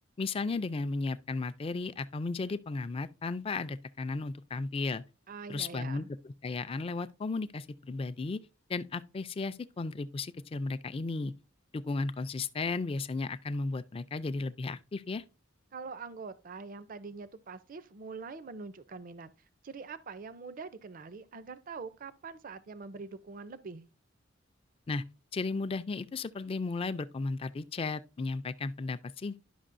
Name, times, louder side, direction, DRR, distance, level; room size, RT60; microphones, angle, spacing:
voice 1, 0.2-5.0 5.5-6.0 6.4-8.4 8.7-11.3 11.7-15.2 24.9-25.0 25.3-29.4, left 3 dB, 30° left, 0.3 m, -34 dB
voice 2, 5.3-6.1 15.7-19.3 19.6-23.9, right 4 dB, 45° right, 0.4 m, -44 dB
11.0 x 6.0 x 2.5 m
head